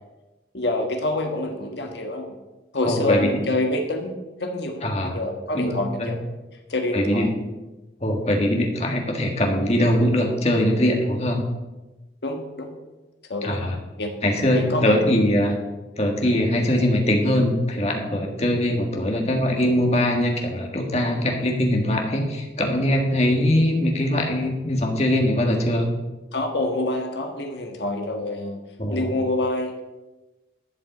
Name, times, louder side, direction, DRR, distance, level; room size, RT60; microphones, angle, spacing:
voice 1, 0.5-2.3 2.7-4.1 4.4-4.8 5.1-6.2 6.7-7.3 12.2-12.7 13.3-13.5 14.0-14.1 14.5-15.0 15.5-15.6 26.3-28.6 28.9-29.8, left 2 dB, 70° left, 3 dB, 1.4 m, -26 dB
voice 2, 2.9-3.3 4.8-5.1 5.5-5.7 6.0-6.1 6.9-7.3 8.0-11.4 13.4-13.8 14.2-15.5 16.0-25.9 28.8-29.1, left 1 dB, 35° left, 1 dB, 1.7 m, -22 dB
12.0 x 5.3 x 8.4 m, 1.1 s
head